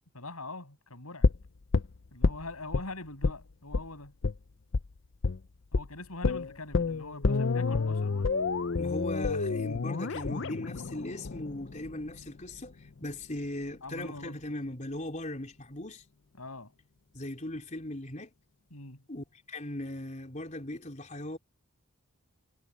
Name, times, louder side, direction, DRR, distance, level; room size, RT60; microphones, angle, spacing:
voice 1, 0.1-1.3 2.1-4.1 5.7-8.3 13.8-14.5 16.4-16.7 18.7-19.0, left 2 dB, 85° left, 6.4 m, -43 dB
sound 1, 1.2-2.9 3.2-3.4 3.7-3.9 4.2-4.4 4.7-4.9 5.2-5.4 5.7-5.9 6.2-12.2 12.5-12.6, left 4 dB, 55° left, 0.6 m, -29 dB
voice 2, 8.8-16.0 17.1-18.3 19.1-21.4, left 1 dB, 35° left, 4.2 m, -39 dB
head